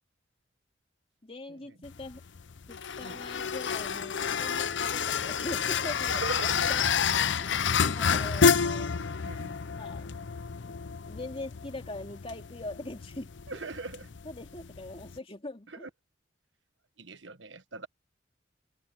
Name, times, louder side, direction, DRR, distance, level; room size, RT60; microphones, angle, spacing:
voice 1, 1.2-2.2 2.7-8.9 9.7-10.1 10.7-10.8 11.1-13.6 14.2-15.9, left 2 dB, 30° left, 2.7 m, -42 dB
sound 1, 1.8-15.2, left 6 dB, 80° left, 0.7 m, -29 dB
voice 2, 6.2-6.7 9.2-9.6 13.5-14.1 15.8-15.9 17.0-17.9, right 3 dB, 90° right, 1.4 m, -40 dB
head